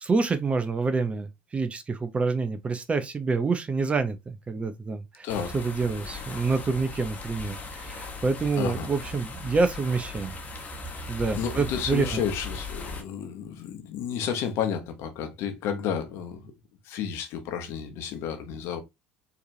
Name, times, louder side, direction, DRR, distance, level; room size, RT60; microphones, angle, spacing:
voice 1, 0.0-5.2 5.5-10.3 11.1-12.2, right 4 dB, 25° right, 0.7 m, -27 dB
voice 2, 5.2-5.5 8.6-8.9 11.3-16.5 16.8-18.8, left 7 dB, 55° left, 1.0 m, -31 dB
sound 1, 5.3-13.0, left 2 dB, 30° left, 1.2 m, -38 dB
4.6 x 3.1 x 2.7 m
figure-of-eight pair, 65°, 5 cm